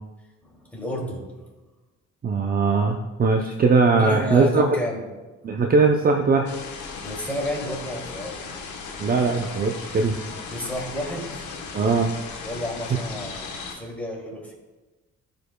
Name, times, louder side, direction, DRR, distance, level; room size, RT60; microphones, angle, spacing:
voice 1, 0.7-1.3 4.0-5.0 7.0-8.5 10.5-11.4 12.4-14.5, equal, 5° left, -2 dB, 2.4 m, -31 dB
voice 2, 2.2-4.8 5.4-6.5 9.0-10.1 11.7-12.1, right 4 dB, 30° right, 3 dB, 0.5 m, -20 dB
sound 1, 6.5-13.8, left 5 dB, 75° left, 1.2 m, -37 dB
13.5 x 5.2 x 2.2 m, 1.2 s
cardioid pair, 90°, 30 cm